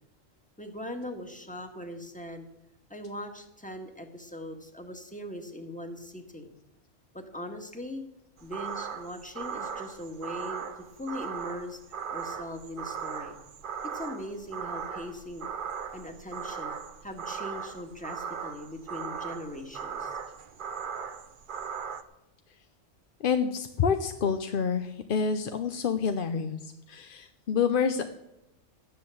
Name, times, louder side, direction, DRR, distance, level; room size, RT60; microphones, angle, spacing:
voice 1, 0.6-2.5 2.9-6.5 7.1-8.0 8.4-10.7 11.0-11.8 12.1-13.4 13.8-15.5 15.9-16.8 17.0-20.1, left 1 dB, 5° left, 4 dB, 1.6 m, -40 dB
sound 1, 8.4-22.0, right 7 dB, 45° right, 0.8 m, -38 dB
voice 2, 23.2-28.0, left 6 dB, 50° left, 8 dB, 0.8 m, -28 dB
12.5 x 10.0 x 7.1 m, 0.90 s
omnidirectional pair, 1.3 m